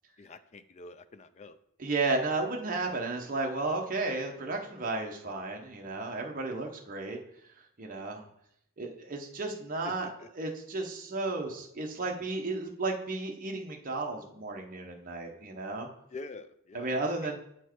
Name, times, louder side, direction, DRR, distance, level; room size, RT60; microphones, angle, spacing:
voice 1, 0.2-1.6 9.8-10.1 16.1-17.0, left 3 dB, 30° left, 12 dB, 0.3 m, -45 dB
voice 2, 1.8-7.2 7.8-8.3 8.8-15.9 16.7-17.4, right 3 dB, 35° right, 1 dB, 0.9 m, -33 dB
8.1 x 4.5 x 4.5 m, 0.75 s
head